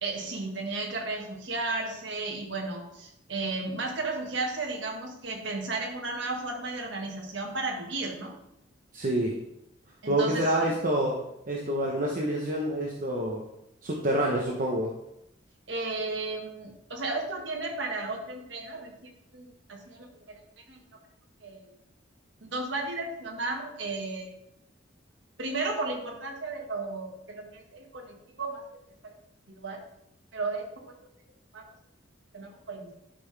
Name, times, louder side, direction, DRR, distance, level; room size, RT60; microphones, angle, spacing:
voice 1, 0.0-8.3 10.0-10.8 15.7-20.1 20.7-20.8 21.4-21.6 22.5-24.3 25.4-28.6 29.0-29.1 29.5-29.8 30.3-30.9 31.5-31.6 32.3-32.9, right 3 dB, 65° right, 1 dB, 1.7 m, -34 dB
voice 2, 8.9-9.3 10.1-13.5 13.8-14.9, right 1 dB, 45° right, -1 dB, 1.0 m, -27 dB
11.5 x 5.8 x 3.4 m, 0.82 s
head